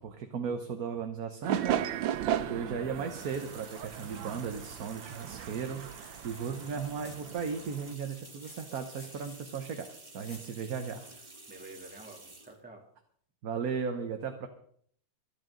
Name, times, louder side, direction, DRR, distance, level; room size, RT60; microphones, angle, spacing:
voice 1, 0.0-9.9 10.1-11.0 13.4-14.5, right 6 dB, 55° right, 6 dB, 1.4 m, -36 dB
sound 1, 1.4-7.9, right 11 dB, 85° right, 1.4 m, -36 dB
voice 2, 2.4-2.9 11.0-11.1 11.5-12.9, right 2 dB, 5° right, -2 dB, 2.9 m, -50 dB
sound 2, 2.8-12.6, right 2 dB, 25° right, 1.7 m, -51 dB
sound 3, 5.9-6.4 6.7-10.5 12.2-12.3, left 2 dB, 50° left, 3.3 m, -55 dB
26.0 x 9.2 x 3.9 m, 0.62 s
omnidirectional pair, 2.0 m